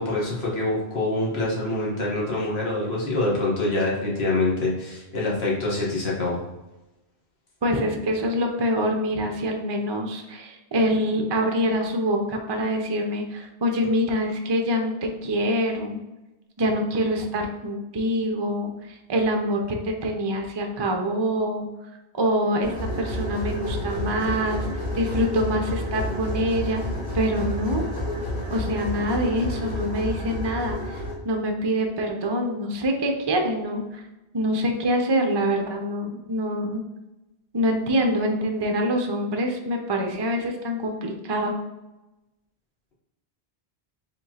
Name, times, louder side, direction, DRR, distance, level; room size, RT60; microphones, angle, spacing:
voice 1, 0.0-6.4, left 2 dB, 70° left, -4 dB, 1.4 m, -25 dB
voice 2, 7.6-16.0 16.6-21.7 22.1-24.7 24.9-26.8 27.1-27.9 28.5-31.0 31.2-34.0 34.3-36.8 37.5-41.5, equal, 35° right, 3 dB, 0.4 m, -25 dB
sound 1, 22.6-31.1, left 1 dB, 45° left, 1.8 m, -30 dB
4.7 x 3.6 x 2.8 m, 0.99 s
omnidirectional pair, 1.1 m